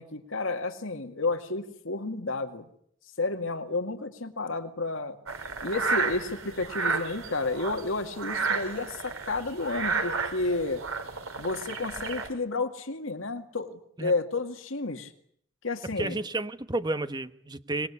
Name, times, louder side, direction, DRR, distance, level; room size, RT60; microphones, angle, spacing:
voice 1, 0.0-2.6 3.2-5.2 5.6-10.8 11.4-15.1 15.6-16.1, left 3 dB, 75° left, 6 dB, 2.2 m, -31 dB
sound 1, 5.3-12.3, right 4 dB, 90° right, 3.7 m, -32 dB
voice 2, 16.0-17.9, right 2 dB, 20° right, 10 dB, 1.1 m, -31 dB
25.5 x 20.5 x 9.9 m, 0.68 s
head